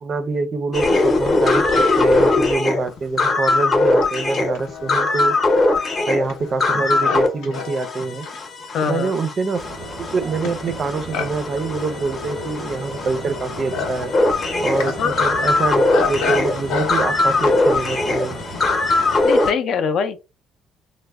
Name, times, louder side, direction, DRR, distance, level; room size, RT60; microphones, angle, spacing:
voice 1, 0.0-5.4 6.0-8.3 8.8-9.6 10.0-14.1 14.6-18.4, right 3 dB, 30° right, 0.4 m, -25 dB
sound 1, 0.7-7.3 7.5-19.5, left 2 dB, 30° left, 0.8 m, -21 dB
Livestock farm animals working animals, 2.0-2.1 2.9-18.8, left 5 dB, 80° left, 0.9 m, -32 dB
voice 2, 8.7-9.2 15.0-15.3 19.2-20.2, left 6 dB, 50° left, 0.4 m, -23 dB
sound 2, 9.6-19.3, right 1 dB, 5° left, 0.9 m, -34 dB
3.2 x 2.0 x 3.4 m
cardioid pair, 150°, 0 cm